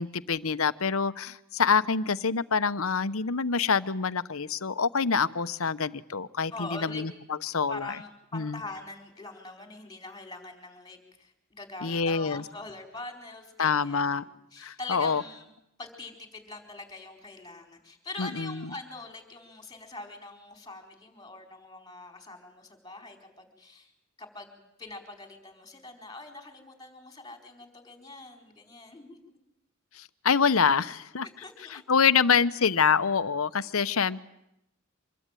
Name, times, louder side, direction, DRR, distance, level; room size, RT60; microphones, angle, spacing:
voice 1, 0.0-7.1 7.4-7.9 8.3-8.6 11.8-12.4 13.6-14.2 14.6-15.2 18.2-18.7 29.9-31.3 31.7-34.2, left 6 dB, 75° left, 14 dB, 0.9 m, -26 dB
voice 2, 6.5-7.0 7.7-15.5 15.8-23.9 24.2-29.2 31.2-31.8, left 2 dB, 20° left, 4 dB, 4.6 m, -43 dB
26.0 x 21.5 x 9.2 m, 0.80 s
head